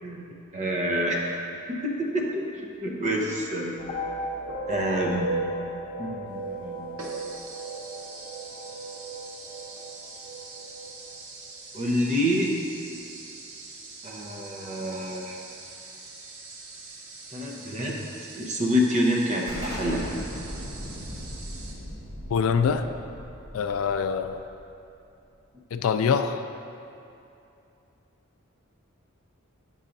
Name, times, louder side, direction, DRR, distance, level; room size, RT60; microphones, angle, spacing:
voice 1, 0.0-1.2 1.7-3.8 4.7-5.3 6.0-7.0 11.7-12.5 14.0-15.4 17.3-18.0 18.3-20.1, equal, 35° right, -1 dB, 0.7 m, -27 dB
sound 1, 3.8-11.0, right 1 dB, 40° left, 0.8 m, -35 dB
sound 2, 6.3-6.4 7.0-21.7, right 3 dB, 80° right, 0.8 m, -44 dB
Explosion, 19.5-24.9, equal, 55° right, 1.4 m, -38 dB
voice 2, 22.3-22.9 23.5-24.4 25.7-26.4, left 6 dB, 75° left, 8 dB, 0.3 m, -24 dB
8.1 x 5.5 x 2.6 m, 2.7 s
head